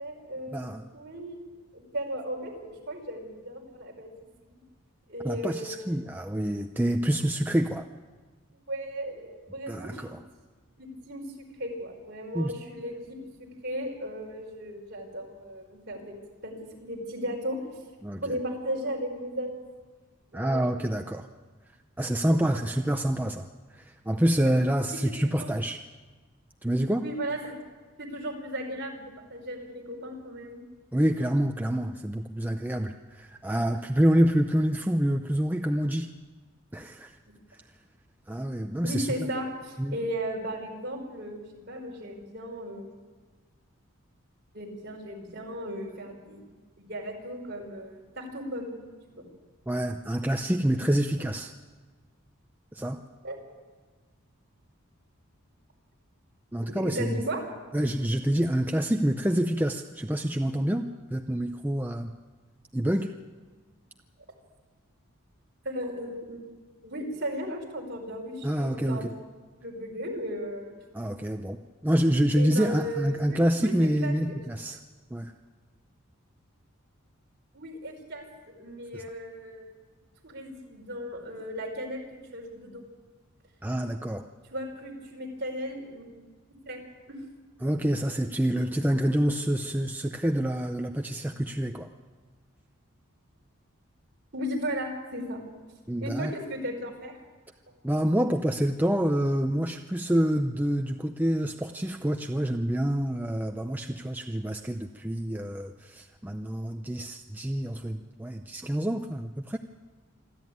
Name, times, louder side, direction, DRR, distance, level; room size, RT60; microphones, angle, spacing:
voice 1, 0.0-0.6 0.9-1.4 1.7-4.1 4.5-4.6 5.1-5.8 8.7-10.2 10.8-11.2 11.6-16.1 16.4-16.5 16.8-17.6 18.2-19.6 20.3-20.8 22.2-22.6 24.9-25.5 26.9-27.5 28.0-29.0 29.3-30.6 38.8-42.9 44.5-46.4 46.8-48.7 49.1-49.2 53.2-53.4 56.7-57.4 65.6-69.1 69.6-70.7 72.4-73.7 74.0-74.1 77.5-79.8 80.2-82.0 82.3-82.8 84.5-86.1 86.6-86.8 87.1-87.2 94.3-95.4 96.0-97.1, equal, 50° right, 0 dB, 5.0 m, -36 dB
voice 2, 0.5-0.9 5.2-7.9 9.7-10.2 12.3-12.5 18.0-18.3 20.3-21.3 22.0-25.8 26.6-27.1 30.9-36.1 36.7-37.2 38.3-39.1 39.8-40.0 49.7-51.5 52.7-53.0 56.5-57.2 57.7-62.1 62.7-63.1 68.4-69.1 70.9-74.8 75.1-75.3 78.9-79.0 83.6-84.2 87.6-91.9 95.9-96.3 97.8-109.6, equal, 10° right, 5 dB, 0.6 m, -27 dB
26.5 x 12.5 x 9.4 m, 1.4 s
head